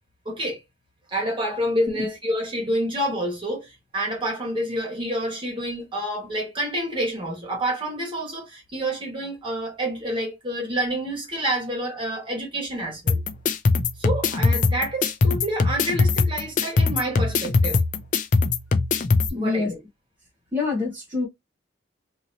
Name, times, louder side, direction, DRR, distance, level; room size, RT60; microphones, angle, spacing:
voice 1, 0.2-0.6 1.1-13.2 14.0-17.8 19.3-19.8, right 1 dB, 25° right, 1.4 m, -28 dB
sound 1, 13.1-19.3, left 4 dB, 40° left, 0.4 m, -21 dB
voice 2, 19.3-19.7 20.5-21.3, left 4 dB, 10° right, 0.9 m, -25 dB
2.8 x 2.8 x 2.8 m
head